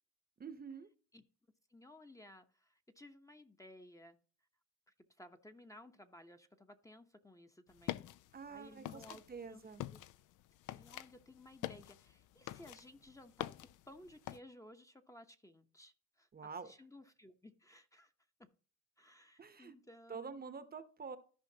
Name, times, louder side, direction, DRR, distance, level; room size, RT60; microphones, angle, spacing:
voice 1, 0.4-0.9 8.3-9.8 16.3-16.7 19.4-19.7 20.1-21.2, right 5 dB, 30° right, 0.8 m, -47 dB
voice 2, 1.7-4.2 5.2-8.0 8.5-10.0 10.7-16.3 16.6-18.1 18.4-18.5 19.0-20.4, left 1 dB, 10° left, 0.8 m, -58 dB
sound 1, 7.7-14.4, left 14 dB, 80° left, 0.5 m, -47 dB
14.0 x 5.0 x 2.8 m
cardioid pair, 90°, 30 cm